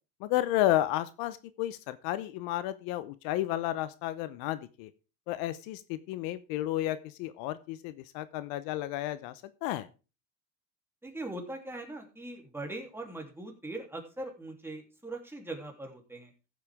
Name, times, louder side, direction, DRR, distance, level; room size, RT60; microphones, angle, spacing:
voice 1, 0.2-4.9 5.3-9.9, left 14 dB, 65° left, 14 dB, 0.9 m, -32 dB
voice 2, 11.0-16.3, right 2 dB, 5° right, 1 dB, 3.0 m, -41 dB
15.0 x 8.0 x 3.6 m, 0.32 s
supercardioid pair, 115°, 38 cm